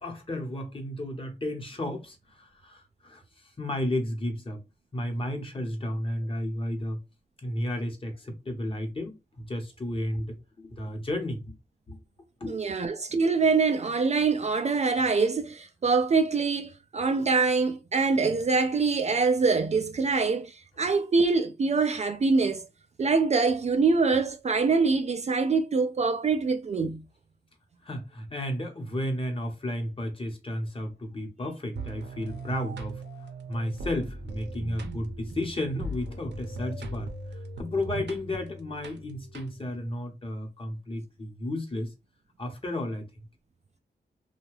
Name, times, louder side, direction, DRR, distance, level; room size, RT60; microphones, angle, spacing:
voice 1, 0.0-4.6 4.9-7.0 7.4-11.6 11.9-12.0 12.4-12.6 27.8-33.0 33.5-41.9 42.4-43.0, left 1 dB, 30° left, 1.0 m, -33 dB
voice 2, 12.5-22.7 23.0-27.0 34.6-35.0, right 4 dB, 40° right, 0.4 m, -24 dB
sound 1, 31.8-39.9, right 1 dB, 80° right, 0.7 m, -39 dB
2.7 x 2.3 x 3.1 m
wide cardioid pair, 100°, 18 cm